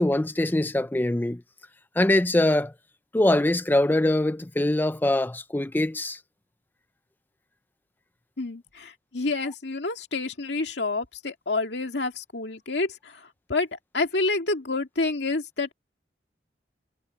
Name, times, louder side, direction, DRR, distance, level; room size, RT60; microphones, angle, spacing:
voice 1, 0.0-1.4 2.0-2.7 3.1-6.2, left 1 dB, 10° left, 0.4 m, -23 dB
voice 2, 8.4-15.7, left 3 dB, 80° left, 2.1 m, -28 dB
head